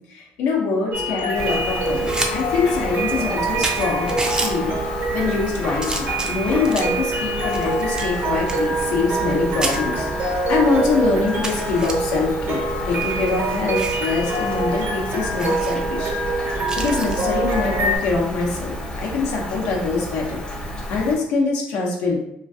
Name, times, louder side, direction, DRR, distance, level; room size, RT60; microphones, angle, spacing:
voice 1, 0.0-16.5 16.7-22.2, left 4 dB, 85° left, -2 dB, 0.7 m, -24 dB
sound 1, 0.9-18.0, right 2 dB, 55° right, 0.7 m, -25 dB
Rain, 1.3-21.2, equal, 25° left, 0.7 m, -32 dB
sound 2, 1.8-2.3 2.7-2.8 3.3-3.4 3.6-4.5 5.2-5.5 5.8-7.0 7.5-9.4 9.6-9.8 10.4-10.5 10.8-10.9 11.4-11.9 12.8-14.1 14.4-14.6 14.9-15.0 15.4-15.8 16.7-17.2 19.0-19.2, right 2 dB, 20° right, 0.4 m, -29 dB
3.1 x 2.4 x 2.6 m, 0.78 s
cardioid pair, 110°, 4 cm